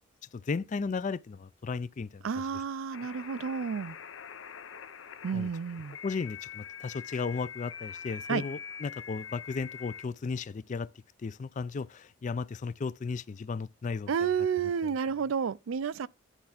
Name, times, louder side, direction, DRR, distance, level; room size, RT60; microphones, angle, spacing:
voice 1, 0.3-2.3 5.3-5.5 6.0-10.9 11.2-14.1 14.8-14.9, left 4 dB, 40° left, 0.4 m, -35 dB
voice 2, 2.2-4.0 5.2-6.0 8.3-8.4 14.1-16.1, right 6 dB, 85° right, 0.4 m, -31 dB
sound 1, 2.9-10.0, left 7 dB, 70° left, 0.7 m, -44 dB
10.0 x 3.4 x 5.8 m
head